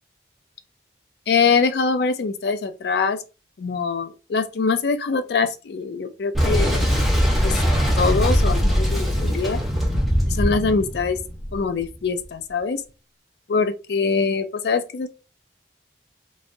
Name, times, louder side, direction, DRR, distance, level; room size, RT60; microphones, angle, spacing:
voice 1, 1.3-3.2 3.6-6.8 7.4-7.6 8.0-9.6 10.3-11.2 11.5-12.8 13.5-15.1, left 4 dB, 65° left, 0.4 m, -23 dB
Boom, 6.3-11.9, equal, ahead, 1.0 m, -21 dB
3.1 x 2.5 x 2.6 m
head